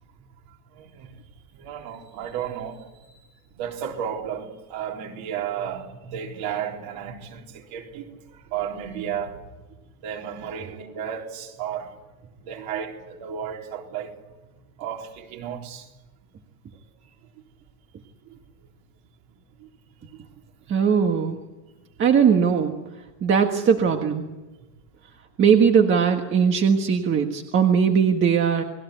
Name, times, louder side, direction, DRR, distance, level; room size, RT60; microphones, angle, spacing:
voice 1, 0.7-1.2 1.5-3.3 3.5-9.4 9.7-12.0 12.4-14.2 14.8-15.9 18.3-18.4 19.6-19.7 20.1-20.2, right 8 dB, 50° right, 4.0 m, -33 dB
voice 2, 20.7-21.4 22.0-24.3 25.4-28.6, right 6 dB, 25° right, 1.6 m, -20 dB
30.0 x 20.5 x 8.2 m
cardioid pair, 175°, 47 cm